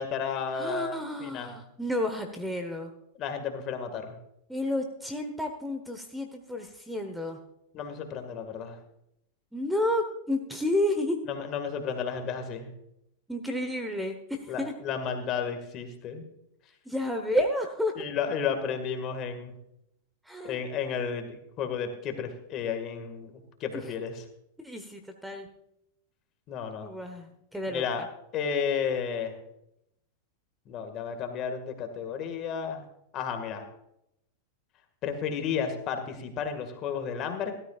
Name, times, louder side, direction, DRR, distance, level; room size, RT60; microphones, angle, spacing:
voice 1, 0.0-1.5 3.2-4.2 7.7-8.8 11.3-12.7 14.5-16.2 18.0-19.5 20.4-24.2 26.5-26.9 27.7-28.0 28.3-29.4 30.7-32.8 33.1-33.7 35.0-37.5, left 6 dB, 40° left, 6 dB, 1.9 m, -32 dB
voice 2, 0.5-2.9 4.5-7.4 9.5-11.2 13.3-14.7 16.8-17.9 20.2-20.6 23.7-23.9 24.6-25.5 26.8-28.1, left 1 dB, 5° right, 5 dB, 1.1 m, -31 dB
16.0 x 13.0 x 2.5 m, 0.79 s
hypercardioid pair, 130°, 0 cm